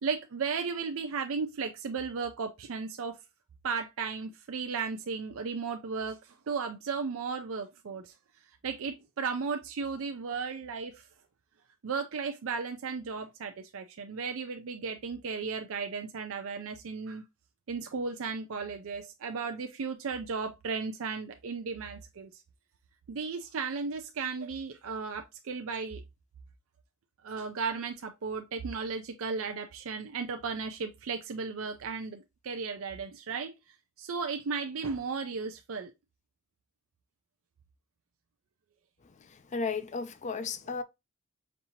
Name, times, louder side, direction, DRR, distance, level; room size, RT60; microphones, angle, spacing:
voice 1, 0.0-3.2 3.6-6.2 6.5-8.1 8.6-10.9 11.8-17.2 17.7-22.3 23.1-26.0 27.2-33.5 34.0-35.9, right 5 dB, 65° right, 0.5 m, -35 dB
voice 2, 39.5-40.8, left 4 dB, 35° left, 0.4 m, -33 dB
5.3 x 2.7 x 2.8 m
head